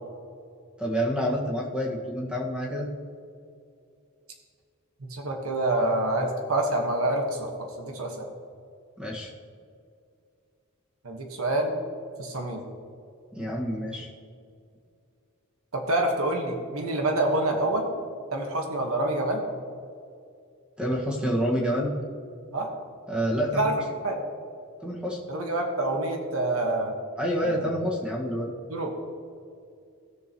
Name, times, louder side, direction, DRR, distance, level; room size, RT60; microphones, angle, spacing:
voice 1, 0.8-2.9 9.0-9.3 13.3-14.1 20.8-21.9 23.1-23.7 24.8-25.2 27.2-28.5, equal, 5° right, -3 dB, 1.6 m, -28 dB
voice 2, 5.0-7.5 7.8-8.3 11.0-11.7 12.2-12.6 15.7-17.9 18.3-19.4 22.5-22.7 23.5-23.8 24.0-24.2 25.3-26.9 27.4-27.7 28.7-28.9, right 1 dB, 80° right, 2 dB, 1.4 m, -27 dB
16.5 x 6.9 x 3.0 m, 2.4 s
head